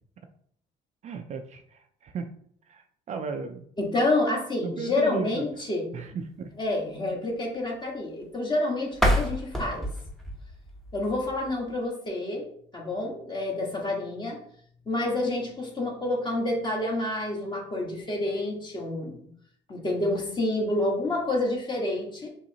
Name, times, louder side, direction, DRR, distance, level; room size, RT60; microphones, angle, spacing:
voice 1, 1.0-2.3 2.6-3.7 4.6-5.4 5.9-6.5, right 5 dB, 45° right, 6 dB, 0.4 m, -35 dB
voice 2, 3.8-5.9 6.6-9.9 10.9-12.5 12.7-14.4 14.9-19.2 19.7-22.3, left 2 dB, 25° left, -1 dB, 1.5 m, -28 dB
sound 1, 8.9-11.8, equal, ahead, 0.8 m, -28 dB
5.4 x 3.1 x 2.8 m, 0.64 s
cardioid pair, 110°, 17 cm